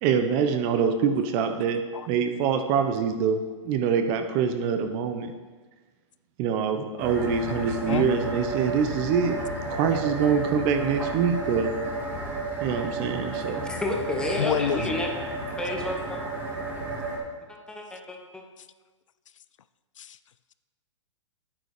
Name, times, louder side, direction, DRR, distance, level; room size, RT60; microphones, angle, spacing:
voice 1, 0.0-1.8 2.1-3.4 3.6-5.3 6.4-9.4 9.7-11.7 12.6-13.7, right 6 dB, 30° right, 7 dB, 0.9 m, -25 dB
sound 1, 7.0-17.2, right 2 dB, 10° right, 2.0 m, -32 dB
voice 2, 7.6-8.1 14.4-14.9 20.0-20.2, left 9 dB, 75° left, 14 dB, 0.5 m, -28 dB
voice 3, 13.6-15.3 15.6-16.2 17.5-18.4, left 2 dB, 5° left, 1 dB, 1.2 m, -31 dB
9.3 x 8.9 x 5.0 m, 1.3 s
hypercardioid pair, 145°, 16 cm